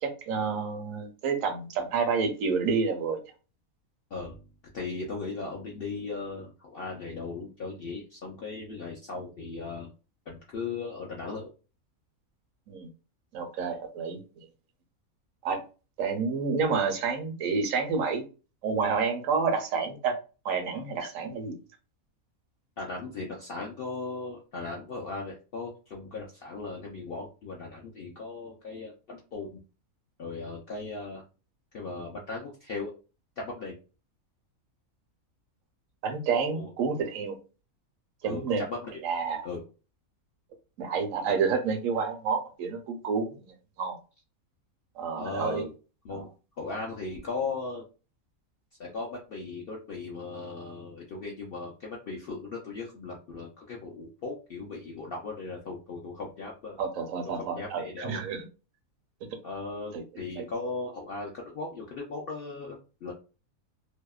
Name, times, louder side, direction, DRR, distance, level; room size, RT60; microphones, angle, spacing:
voice 1, 0.0-3.2 12.7-12.9 13.3-14.2 15.4-15.6 16.0-18.2 18.6-20.1 20.4-21.6 36.0-37.4 38.2-38.6 39.0-39.5 40.8-44.0 45.0-45.7 46.1-46.2 56.8-58.4 59.9-60.0 60.4-60.5, right 5 dB, 75° right, 5 dB, 0.9 m, -29 dB
voice 2, 4.1-4.4 4.7-9.9 10.3-11.5 22.8-29.6 30.2-31.2 31.7-32.9 33.4-33.7 36.5-36.7 38.2-38.9 39.4-39.6 45.2-45.6 46.0-46.3 46.6-47.8 48.8-56.8 57.3-58.2 59.4-63.1, left 3 dB, 65° left, -2 dB, 0.5 m, -37 dB
2.7 x 2.0 x 2.3 m, 0.33 s
omnidirectional pair, 1.5 m